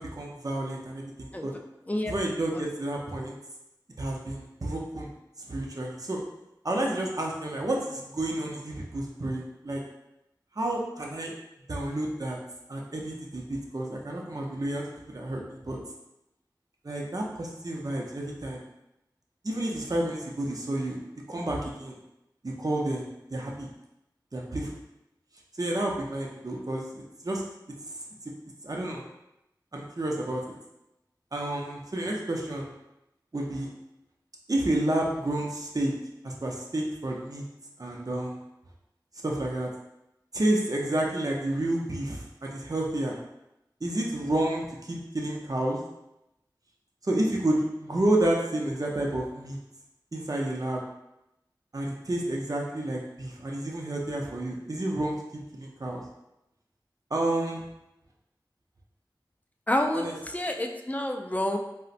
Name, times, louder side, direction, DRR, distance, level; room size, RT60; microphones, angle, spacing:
voice 1, 0.0-1.5 2.0-3.3 4.0-5.1 5.4-6.2 6.6-9.8 10.5-11.3 11.7-12.4 12.7-15.8 16.8-18.6 19.4-21.0 21.3-22.0 22.4-23.7 24.3-24.8 25.6-27.4 27.9-28.0 28.2-28.3 28.6-29.0 29.7-30.5 31.3-32.7 33.3-33.7 34.5-35.9 36.2-37.4 37.8-38.4 39.2-39.7 40.3-43.2 43.8-45.8 47.0-49.6 50.1-50.8 51.7-56.0 57.1-57.6 59.9-60.1, right 1 dB, 50° right, -1 dB, 0.6 m, -30 dB
voice 2, 59.7-60.1 60.3-61.6, left 1 dB, 20° left, 3 dB, 0.3 m, -28 dB
3.9 x 2.1 x 2.5 m, 0.88 s
wide cardioid pair, 40°, 8 cm